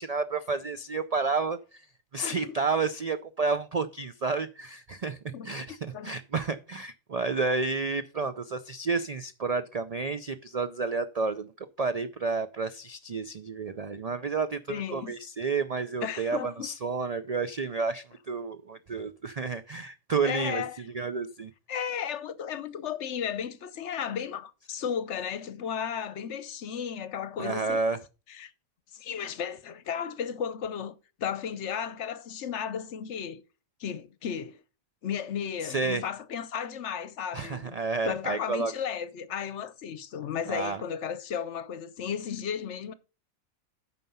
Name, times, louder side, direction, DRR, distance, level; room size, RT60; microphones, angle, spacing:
voice 1, 0.0-1.9 2.1-5.2 5.4-5.8 6.0-20.6 20.9-21.5 27.4-28.0 35.6-36.0 37.3-38.7 40.5-40.8, right 4 dB, 75° right, 0.3 m, -30 dB
voice 2, 2.2-2.6 5.3-5.5 5.9-6.1 14.7-15.1 16.0-16.7 20.2-20.8 21.7-27.8 28.3-28.5 28.9-33.4 33.8-34.6 35.0-37.8 38.0-42.9, left 8 dB, 60° left, 1.0 m, -34 dB
9.3 x 5.9 x 5.4 m
omnidirectional pair, 1.4 m